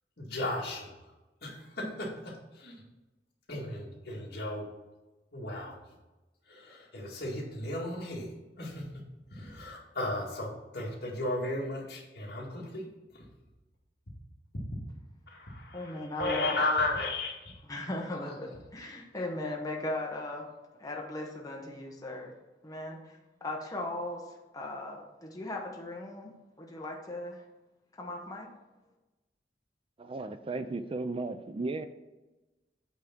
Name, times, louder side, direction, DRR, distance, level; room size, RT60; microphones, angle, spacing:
voice 1, 0.2-0.9 1.4-2.7 3.5-4.7 5.3-5.7 6.5-9.0 9.3-12.9 15.3-17.6, left 2 dB, 60° left, -3 dB, 2.1 m, -35 dB
voice 2, 15.7-16.6 17.7-20.4 20.7-22.3 22.6-24.2 24.5-26.3 26.6-27.4 28.0-28.5, left 2 dB, 20° left, -1 dB, 1.0 m, -38 dB
voice 3, 30.0-31.9, right 3 dB, 30° right, 10 dB, 0.4 m, -35 dB
8.4 x 3.7 x 5.9 m, 1.1 s
head